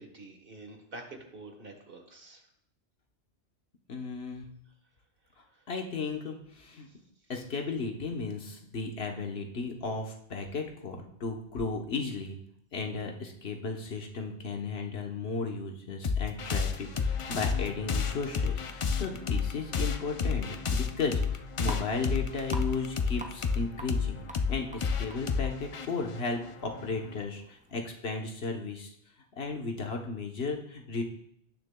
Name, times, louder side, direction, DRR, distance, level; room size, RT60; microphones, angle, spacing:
voice 1, 0.0-2.4, right 2 dB, 60° right, 4 dB, 1.6 m, -47 dB
voice 2, 3.9-4.5 5.7-6.9 7.3-12.4 12.7-24.2 24.5-28.9 29.4-31.0, left 4 dB, 70° left, 3 dB, 1.3 m, -35 dB
sound 1, 16.0-27.1, left 5 dB, 45° left, 0.4 m, -31 dB
sound 2, 21.1-27.8, right 1 dB, 10° right, 0.5 m, -47 dB
17.5 x 6.7 x 2.3 m, 0.73 s
omnidirectional pair, 1.1 m